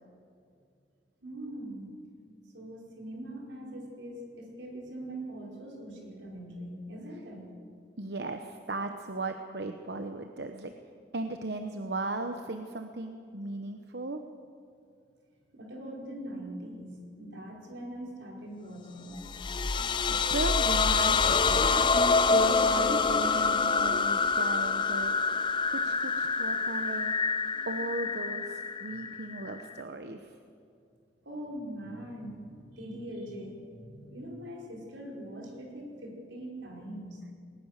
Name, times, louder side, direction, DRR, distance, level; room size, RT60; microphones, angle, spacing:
voice 1, 1.2-1.9 2.5-7.5 15.5-19.3 28.9-29.0 31.2-37.2, right 1 dB, 85° right, -1 dB, 5.1 m, -42 dB
voice 2, 8.0-10.7 11.1-14.2 19.6-25.1 25.7-27.1 27.7-30.3, right 2 dB, 65° right, 6 dB, 0.9 m, -36 dB
sound 1, 19.2-29.8, left 4 dB, 25° left, 0.5 m, -26 dB
20.5 x 20.0 x 6.7 m, 2.4 s
head